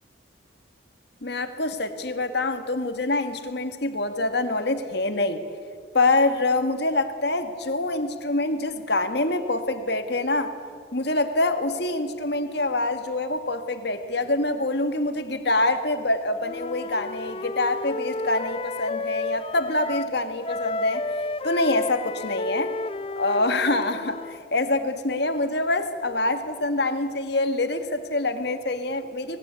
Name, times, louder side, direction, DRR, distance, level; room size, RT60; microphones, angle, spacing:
voice 1, 1.2-5.4 5.9-10.5 10.9-21.1 21.4-22.7 23.2-29.4, left 2 dB, 55° left, 8 dB, 1.8 m, -25 dB
Wind instrument woodwind instrument, 16.4-20.2 20.4-24.4, left 2 dB, 30° left, 0.5 m, -32 dB
25.5 x 20.5 x 8.3 m, 2.2 s
head